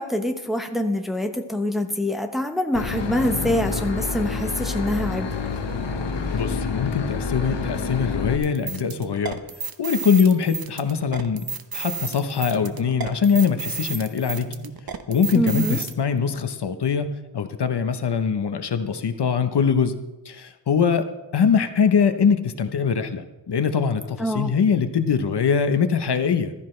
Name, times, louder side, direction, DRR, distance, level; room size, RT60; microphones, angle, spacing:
voice 1, 0.0-5.3 15.3-15.8 24.2-24.5, equal, ahead, 4 dB, 1.0 m, -25 dB
Boat Water vehicle / Engine, 2.7-8.4, left 4 dB, 80° left, 1.2 m, -28 dB
voice 2, 6.3-9.4 9.8-11.4 11.7-14.5 15.1-21.1 21.3-26.5, left 6 dB, 65° left, 9 dB, 0.9 m, -22 dB
sound 1, 8.4-15.9, right 5 dB, 55° right, 0.9 m, -33 dB
15.0 x 13.5 x 3.2 m, 1.0 s
wide cardioid pair, 115°, 43 cm